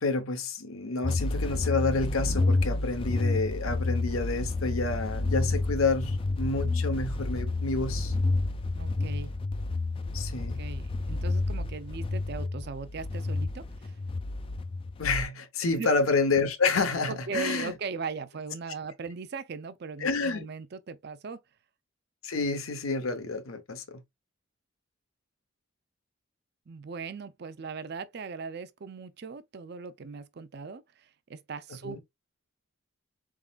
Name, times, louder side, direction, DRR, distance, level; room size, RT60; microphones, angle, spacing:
voice 1, 0.0-8.1 10.1-10.6 15.0-17.7 20.0-20.5 22.2-24.0 31.8-32.0, left 3 dB, 85° left, 0.8 m, -29 dB
sound 1, 1.0-15.3, left 2 dB, 25° left, 0.3 m, -30 dB
voice 2, 8.7-9.3 10.3-14.0 15.6-15.9 17.1-21.4 26.7-32.0, right 4 dB, 50° right, 0.5 m, -39 dB
4.1 x 3.7 x 2.3 m
head